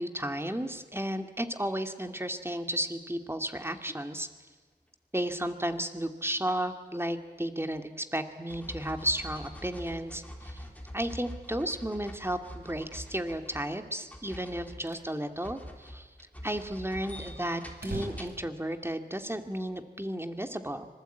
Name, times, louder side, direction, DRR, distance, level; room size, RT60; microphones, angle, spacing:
voice 1, 0.0-4.3 5.1-10.6 10.9-16.1 16.4-20.9, right 1 dB, 15° right, 7 dB, 2.3 m, -33 dB
sound 1, 7.3-7.4 7.8-8.0 8.5-13.8 14.1-18.5 19.5-19.6, equal, 10° left, 3.8 m, -45 dB
sound 2, 14.9-15.1 15.5-15.6 15.8-15.9 16.3-19.3, right 2 dB, 75° right, 4.9 m, -44 dB
25.5 x 20.5 x 9.2 m, 1.4 s
cardioid pair, 45°, 17 cm